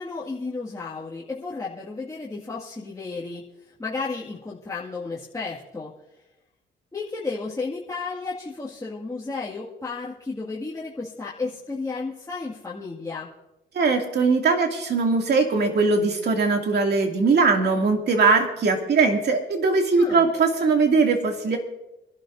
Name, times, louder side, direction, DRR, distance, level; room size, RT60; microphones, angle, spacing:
voice 1, 0.0-3.4 3.8-5.9 6.9-13.3 20.0-20.3, left 4 dB, 15° left, -6 dB, 2.1 m, -33 dB
voice 2, 13.7-21.6, right 4 dB, 55° right, 3 dB, 2.5 m, -20 dB
24.0 x 12.0 x 2.7 m, 0.94 s
cardioid pair, 90°, 20 cm